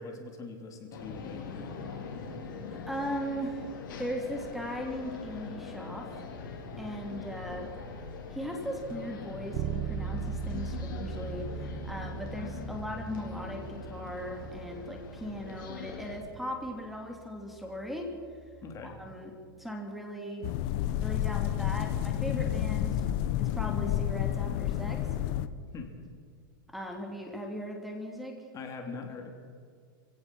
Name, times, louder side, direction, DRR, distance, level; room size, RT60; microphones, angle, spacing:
voice 1, 0.0-1.8 18.6-18.9 25.7-25.9 28.5-29.3, left 4 dB, 30° left, 4 dB, 3.0 m, -42 dB
sound 1, 0.9-16.2, left 4 dB, 65° left, 4.7 m, -42 dB
voice 2, 2.7-3.7 4.0-6.2 6.8-7.7 8.3-18.1 18.8-19.3 19.6-20.4 21.0-23.0 23.4-25.1 26.7-28.4, equal, ahead, 2 dB, 2.9 m, -38 dB
Bass guitar, 9.5-19.3, right 8 dB, 40° right, 1.4 m, -41 dB
sound 2, 20.4-25.5, left 12 dB, 50° left, 1.1 m, -30 dB
26.0 x 17.0 x 6.2 m, 2.1 s
hypercardioid pair, 130°, 12 cm